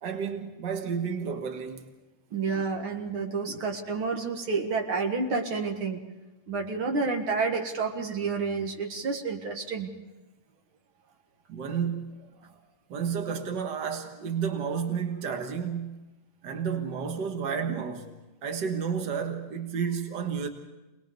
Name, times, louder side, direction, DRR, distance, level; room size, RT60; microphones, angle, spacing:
voice 1, 0.0-1.8 2.3-2.4 3.5-3.6 11.5-12.6 12.9-16.0 16.4-20.5, right 6 dB, 60° right, 2.1 m, -31 dB
voice 2, 2.3-6.0 6.5-9.9, right 4 dB, 85° right, 2.7 m, -29 dB
25.5 x 20.0 x 5.3 m
omnidirectional pair, 2.2 m